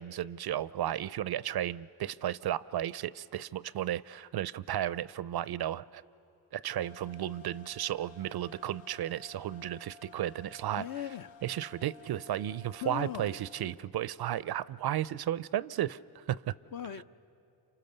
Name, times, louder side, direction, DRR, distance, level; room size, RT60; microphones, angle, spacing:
voice 1, 0.0-6.0 6.5-10.9 11.4-16.5 17.0-17.1, right 12 dB, 50° right, 0.5 m, -34 dB
sound 1, 6.7-13.7, left 4 dB, 65° left, 1.0 m, -55 dB
voice 2, 10.8-11.4 12.8-13.4 16.7-17.0, left 10 dB, 45° left, 0.7 m, -38 dB
28.0 x 26.0 x 6.8 m
supercardioid pair, 50°, 48 cm